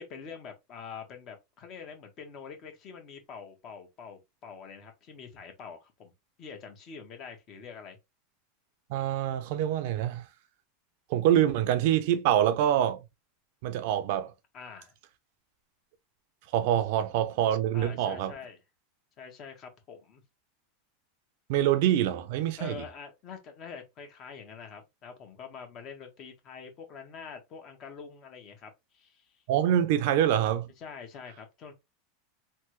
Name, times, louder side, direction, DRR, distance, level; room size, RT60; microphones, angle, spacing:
voice 1, 0.0-6.1 6.4-8.0 14.5-14.9 17.7-18.6 19.2-20.2 22.6-29.4 30.8-31.7, left 6 dB, 40° left, 1.1 m, -45 dB
voice 2, 8.9-10.2 11.1-13.0 13.6-14.3 16.5-18.3 21.5-22.8 29.5-30.7, right 11 dB, 65° right, 0.6 m, -25 dB
3.4 x 2.1 x 3.0 m
supercardioid pair, 125°, 0 cm